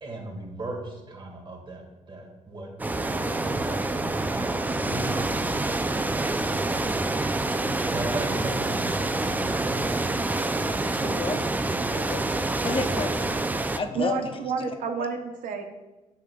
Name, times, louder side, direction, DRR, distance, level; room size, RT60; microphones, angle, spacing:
voice 1, 0.0-2.7 3.0-9.7, right 1 dB, 35° right, 1 dB, 1.8 m, -38 dB
sound 1, 2.8-13.8, right 2 dB, 10° right, 0.4 m, -27 dB
voice 2, 10.9-13.2 13.7-14.4, left 4 dB, 40° left, 6 dB, 0.7 m, -32 dB
voice 3, 13.9-15.6, right 5 dB, 70° right, 4 dB, 0.7 m, -30 dB
8.4 x 6.3 x 2.3 m, 1.1 s
supercardioid pair, 75°, 14 cm